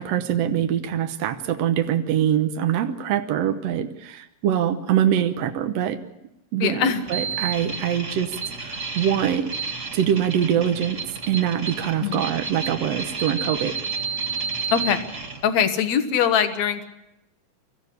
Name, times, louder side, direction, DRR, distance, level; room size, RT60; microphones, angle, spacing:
voice 1, 0.0-6.0 6.5-9.5 9.9-13.7, right 10 dB, 75° right, 6 dB, 1.5 m, -24 dB
voice 2, 6.6-7.0 12.0-12.3 14.7-15.1 15.4-16.9, left 8 dB, 60° left, 9 dB, 2.1 m, -22 dB
sound 1, 7.0-15.4, right 5 dB, 50° right, 0.8 m, -31 dB
24.5 x 14.5 x 8.3 m, 0.89 s
omnidirectional pair, 4.5 m